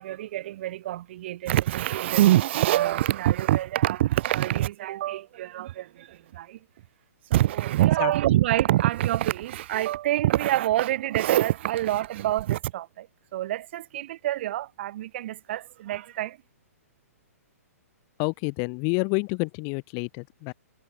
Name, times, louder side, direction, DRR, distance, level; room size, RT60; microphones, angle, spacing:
voice 1, 0.0-6.6 7.3-16.4, right 14 dB, 45° right, 1.1 m, -25 dB
voice 2, 18.2-20.5, left 40 dB or more, 35° left, 2.4 m, -28 dB
figure-of-eight pair, 115°, 8 cm